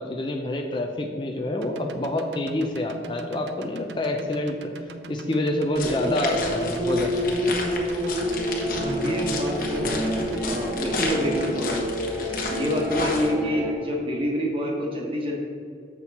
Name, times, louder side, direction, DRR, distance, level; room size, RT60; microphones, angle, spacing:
voice 1, 0.0-7.5, left 1 dB, 25° left, 3 dB, 0.5 m, -27 dB
sound 1, 1.6-10.6, right 4 dB, 85° right, 0.5 m, -41 dB
sound 2, 5.8-13.3, left 3 dB, 50° left, 1.1 m, -33 dB
sound 3, 5.8-13.7, equal, 10° right, 0.9 m, -28 dB
voice 2, 8.7-11.8 12.5-15.3, equal, 30° right, -1 dB, 1.3 m, -27 dB
7.3 x 6.0 x 4.2 m, 2.5 s
head